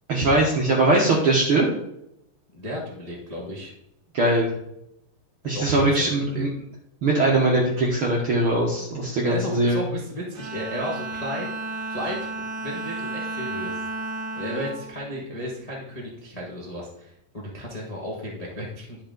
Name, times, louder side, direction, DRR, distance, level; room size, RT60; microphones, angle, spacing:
voice 1, 0.1-1.7 4.1-4.5 5.4-6.5 7.0-9.8, right 2 dB, 65° right, -2 dB, 1.3 m, -21 dB
voice 2, 2.5-3.7 5.5-6.4 9.0-12.3 12.6-13.8 14.3-19.0, equal, 85° left, -4 dB, 0.3 m, -34 dB
Bowed string instrument, 10.3-15.9, right 2 dB, 40° right, 1.9 m, -33 dB
10.5 x 5.6 x 3.9 m, 0.79 s
omnidirectional pair, 4.1 m